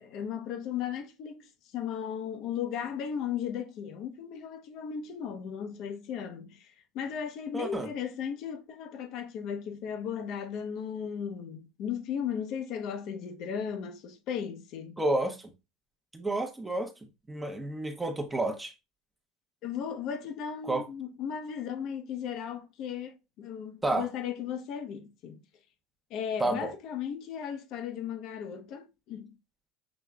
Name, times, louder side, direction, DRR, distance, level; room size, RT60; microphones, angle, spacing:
voice 1, 0.1-15.0 19.6-25.4 26.1-29.3, left 8 dB, 60° left, 0.7 m, -36 dB
voice 2, 7.5-7.9 15.0-15.4 16.1-16.9 17.3-18.7 20.6-20.8 23.8-24.1 26.4-26.7, right 2 dB, 15° right, 0.7 m, -30 dB
6.1 x 3.1 x 2.3 m
supercardioid pair, 95°, 0 cm